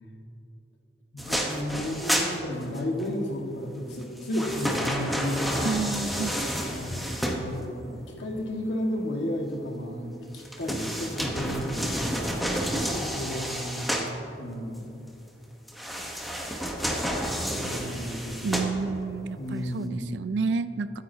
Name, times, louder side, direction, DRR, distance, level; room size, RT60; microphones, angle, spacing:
voice 1, 1.1-5.5 6.7-12.0 12.7-14.1 14.4-14.9 17.5-18.7 19.4-20.0, left 1 dB, 80° left, 1 dB, 1.6 m, -33 dB
sound 1, 1.2-3.1 3.9-7.9 10.3-14.2 15.7-19.2 19.7-19.8, equal, ahead, 1.0 m, -30 dB
voice 2, 5.6-6.3 18.4-20.9, right 4 dB, 75° right, 13 dB, 0.4 m, -30 dB
23.5 x 9.2 x 2.7 m, 2.9 s
head